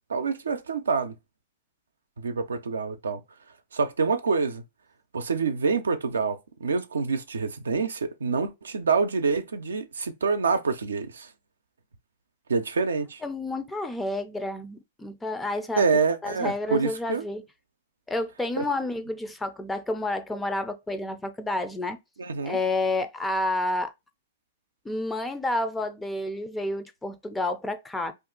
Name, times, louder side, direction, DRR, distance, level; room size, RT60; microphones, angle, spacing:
voice 1, 0.1-1.1 2.2-3.2 3.7-4.6 5.1-11.3 12.5-13.2 15.8-17.2 18.6-18.7 22.2-22.6, right 4 dB, 90° right, 0.5 m, -26 dB
voice 2, 13.2-15.8 16.2-17.4 18.1-22.0 22.4-23.9 24.9-28.1, left 2 dB, 10° left, 0.4 m, -30 dB
2.6 x 2.3 x 3.7 m
hypercardioid pair, 120°, 0 cm